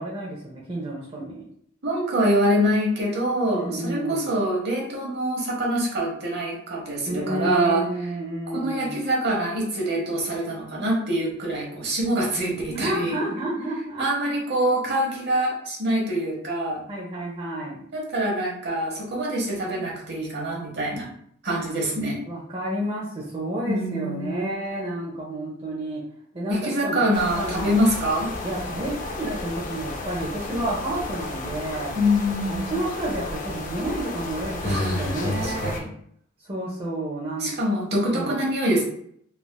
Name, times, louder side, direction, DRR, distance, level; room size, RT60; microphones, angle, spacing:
voice 1, 0.0-1.5 3.5-4.3 7.1-9.0 12.7-14.3 16.9-17.8 22.3-26.0 26.3-27.0 27.3-27.8 28.4-32.0 32.5-35.7 36.4-37.5 38.1-38.3, right 1 dB, 25° right, -5 dB, 0.5 m, -30 dB
voice 2, 1.8-7.9 8.5-13.2 14.0-16.8 17.9-21.1 21.4-22.2 23.7-24.5 26.5-28.3 31.9-32.8 34.6-35.9 37.4-38.8, equal, 55° right, -2 dB, 0.9 m, -25 dB
sound 1, 27.1-35.8, left 2 dB, 40° left, 0.4 m, -32 dB
3.3 x 2.4 x 2.2 m, 0.66 s
head